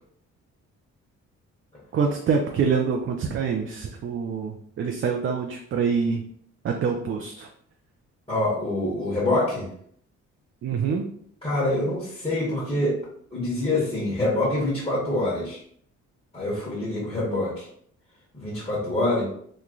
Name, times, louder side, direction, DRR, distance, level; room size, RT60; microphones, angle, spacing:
voice 1, 1.9-6.2 6.6-7.5 10.6-11.0, right 5 dB, 45° right, 3 dB, 0.4 m, -25 dB
voice 2, 8.3-9.7 11.4-13.0 13.3-15.6 16.3-17.7 18.3-19.2, left 1 dB, 20° left, -9 dB, 1.4 m, -25 dB
3.1 x 2.2 x 3.7 m, 0.63 s
cardioid pair, 90°, 30 cm